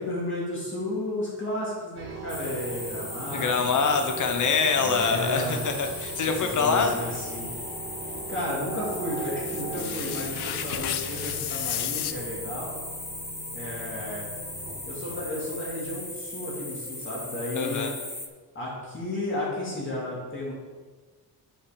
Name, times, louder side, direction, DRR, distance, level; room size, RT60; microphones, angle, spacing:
voice 1, 0.0-3.8 4.8-5.7 6.4-7.5 8.3-12.7 13.5-14.3 14.9-17.9 18.5-20.5, left 1 dB, 30° left, -6 dB, 2.4 m, -33 dB
sound 1, 2.0-16.0, right 3 dB, 60° right, 2.6 m, -40 dB
sound 2, 2.3-18.3, left 2 dB, 5° left, 0.5 m, -37 dB
voice 2, 3.3-6.9 17.5-17.9, left 5 dB, 50° left, 5 dB, 1.0 m, -25 dB
sound 3, 4.2-12.1, left 12 dB, 85° left, 0.6 m, -37 dB
8.5 x 5.7 x 5.2 m, 1.4 s
wide cardioid pair, 165°, 38 cm